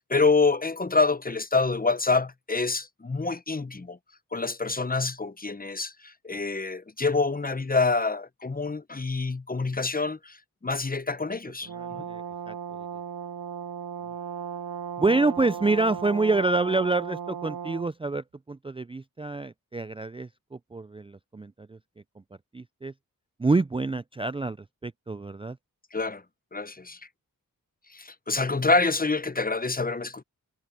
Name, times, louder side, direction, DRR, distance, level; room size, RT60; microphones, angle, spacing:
voice 1, 0.0-4.0 4.3-10.4 10.6-12.0 25.9-26.2 26.5-27.0 27.9-30.2, left 3 dB, 25° left, 0.9 m, -26 dB
Brass instrument, 11.6-17.9, right 8 dB, 70° right, 0.7 m, -36 dB
voice 2, 11.8-12.5 15.0-21.8 22.5-22.9 23.4-24.6 24.8-25.6, right 3 dB, 15° right, 0.4 m, -27 dB
cardioid pair, 45°, 35 cm